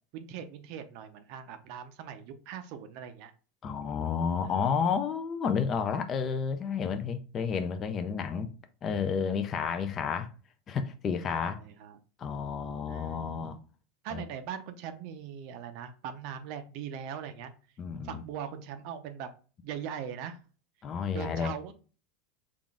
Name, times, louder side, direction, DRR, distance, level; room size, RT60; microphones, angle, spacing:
voice 1, 0.1-3.3 4.4-4.7 11.3-12.0 12.9-13.4 14.0-17.5 18.0-19.3 19.6-20.4 21.1-21.7, right 8 dB, 55° right, 0.5 m, -40 dB
voice 2, 3.6-8.5 8.8-10.3 10.7-11.6 12.2-13.6 14.1-14.2 17.8-18.2 20.8-21.5, left 6 dB, 30° left, 0.4 m, -31 dB
3.8 x 2.4 x 3.5 m
supercardioid pair, 145°, 0 cm